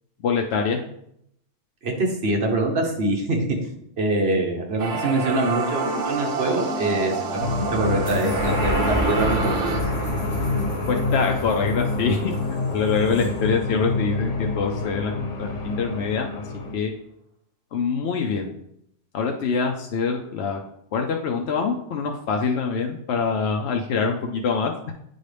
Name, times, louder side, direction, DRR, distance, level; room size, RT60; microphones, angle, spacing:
voice 1, 0.2-0.8 10.9-12.3 12.7-15.1 15.4-16.3 16.7-16.9 17.7-18.5 19.1-20.6 20.9-24.7, left 5 dB, 65° left, 2 dB, 0.8 m, -24 dB
voice 2, 1.8-3.4 4.0-7.1 7.7-9.8, right 2 dB, 60° right, 2 dB, 1.3 m, -24 dB
sound 1, 4.8-9.8, right 4 dB, 90° right, 1.2 m, -28 dB
sound 2, 7.4-16.7, left 3 dB, 85° left, 1.2 m, -27 dB
sound 3, 8.1-14.8 15.3-15.4, right 1 dB, 30° left, 2.2 m, -30 dB
8.9 x 4.0 x 3.3 m, 0.76 s
omnidirectional pair, 1.2 m